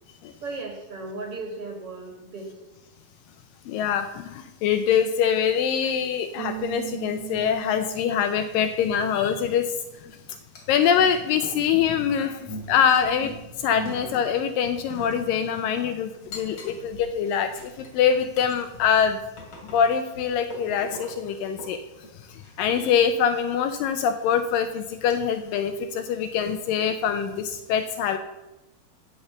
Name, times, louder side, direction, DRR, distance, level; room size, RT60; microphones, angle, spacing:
voice 1, 0.4-2.5, right 3 dB, 45° right, 1 dB, 2.2 m, -36 dB
voice 2, 3.7-9.7 10.7-13.3 13.6-19.2 19.7-21.8 22.6-28.2, left 8 dB, 80° left, 9 dB, 2.1 m, -24 dB
Bass guitar, 6.4-9.5, right 18 dB, 75° right, 1.5 m, -38 dB
sound 1, 9.5-10.2 10.6-15.3 15.6-21.2 21.5-23.1 23.8-24.0 24.6-24.7 25.1-25.5 25.8-25.9 26.4-26.9, left 1 dB, 50° left, 3.5 m, -42 dB
15.5 x 5.7 x 6.9 m, 1.0 s
omnidirectional pair, 4.5 m